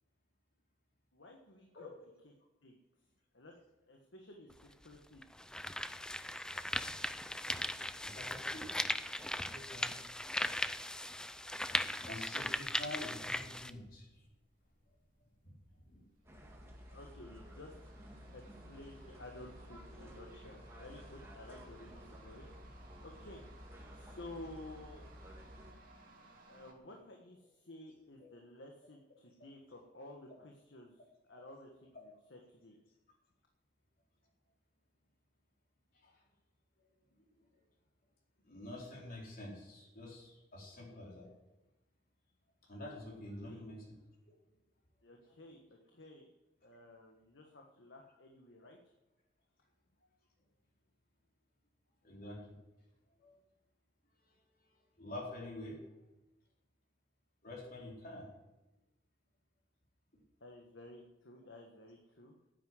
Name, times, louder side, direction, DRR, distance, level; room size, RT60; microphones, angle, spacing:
voice 1, 1.1-1.9 2.6-2.8 3.3-3.5 3.9-5.2 16.9-17.7 18.3-22.5 23.0-23.4 23.9-25.0 26.5-31.0 31.3-32.7 43.4-43.6 45.0-46.3 46.6-48.8 60.4-62.4, left 1 dB, 70° left, 1 dB, 1.5 m, -53 dB
sound 1, 4.5-4.6 5.2-13.7, left 1 dB, 5° left, 0.5 m, -38 dB
voice 2, 8.0-8.7 9.3-10.0 12.0-14.3 15.4-15.5 15.8-16.0 28.2-28.3 31.9-32.0 35.9-36.2 38.4-41.3 42.7-44.0 52.0-52.6 53.2-53.4 54.2-54.3 54.6-54.7 55.0-55.8 57.4-58.3, left 1 dB, 50° left, -3 dB, 4.1 m, -47 dB
sound 2, 13.8-26.7, right 2 dB, 50° right, 2.5 m, -62 dB
sound 3, 16.3-25.7, equal, 15° right, 2.0 m, -53 dB
9.8 x 9.3 x 9.5 m, 1.0 s
head